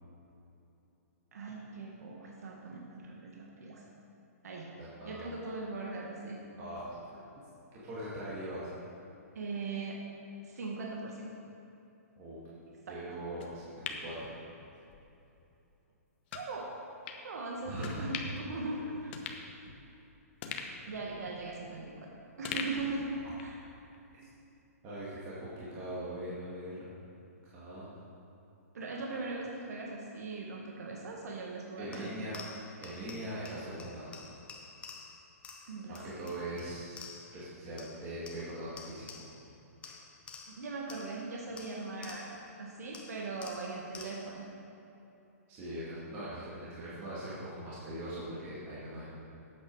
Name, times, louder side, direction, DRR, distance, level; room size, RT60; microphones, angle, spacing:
voice 1, 1.3-3.8 4.4-4.7 5.0-6.4 9.3-10.0 10.4-11.3 12.9-13.0 16.3-16.7 17.2-19.2 20.9-22.1 22.4-23.1 23.4-23.6 28.7-32.2 35.7-36.3 39.8-40.0 40.5-42.3 42.6-44.5, right 3 dB, 75° right, -2 dB, 1.7 m, -40 dB
voice 2, 4.8-5.2 6.6-7.2 7.7-8.7 12.2-12.4 12.9-14.3 17.6-18.1 18.4-18.9 24.8-26.9 27.5-27.9 31.8-32.4 32.8-34.2 35.9-37.1 37.3-39.2 45.5-49.1, right 1 dB, 30° right, -8 dB, 2.3 m, -41 dB
sound 1, 13.4-15.0 15.4-15.5 16.3-16.5 17.1-17.2 17.8-18.5 18.8-18.9 19.1-20.0 20.4-22.0 22.4-23.6 23.9-24.0, left 6 dB, 40° left, 1.1 m, -42 dB
sound 2, 31.9-37.5 37.8-39.5 39.8-42.5 42.9-44.4, left 5 dB, 15° left, 0.8 m, -51 dB
11.5 x 8.6 x 4.8 m, 2.9 s
hypercardioid pair, 150°, 9 cm